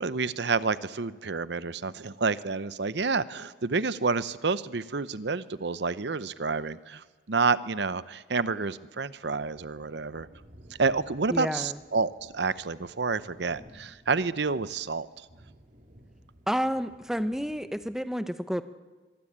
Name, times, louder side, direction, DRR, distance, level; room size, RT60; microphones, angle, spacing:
voice 1, 0.0-10.3 10.8-15.1, right 4 dB, 65° right, 16 dB, 0.8 m, -29 dB
sound 1, 7.7-7.8 8.2-8.3 9.0-18.0, equal, 45° right, 3.3 m, -55 dB
voice 2, 11.3-11.8 16.5-18.6, equal, 5° right, 11 dB, 0.7 m, -30 dB
25.0 x 22.0 x 8.7 m, 1.4 s
head